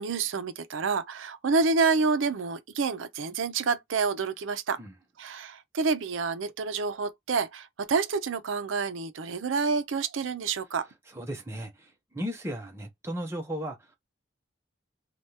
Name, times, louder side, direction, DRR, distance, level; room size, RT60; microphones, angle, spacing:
voice 1, 0.0-4.8 5.2-10.9, right 4 dB, 85° right, 0.5 m, -28 dB
voice 2, 11.1-14.0, equal, 15° right, 0.7 m, -36 dB
3.3 x 2.3 x 2.7 m
head